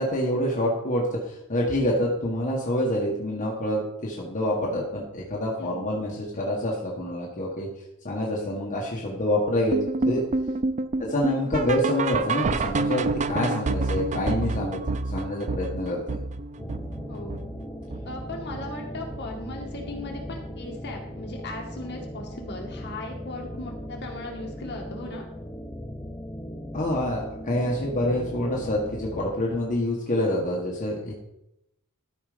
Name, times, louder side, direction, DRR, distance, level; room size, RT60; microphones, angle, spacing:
voice 1, 0.0-7.7 8.0-9.8 10.1-10.2 11.0-16.2 26.7-31.1, left 1 dB, 35° left, -3 dB, 1.5 m, -27 dB
sound 1, 9.7-18.8 19.1-19.4 19.7-19.8 20.3-20.4 20.9-21.0, right 3 dB, 35° right, 0.4 m, -29 dB
sound 2, 16.6-29.3, equal, 10° left, 0.6 m, -38 dB
voice 2, 17.1-17.4 18.0-25.2, left 2 dB, 50° left, 0 dB, 2.0 m, -38 dB
13.0 x 4.9 x 5.1 m, 0.86 s
head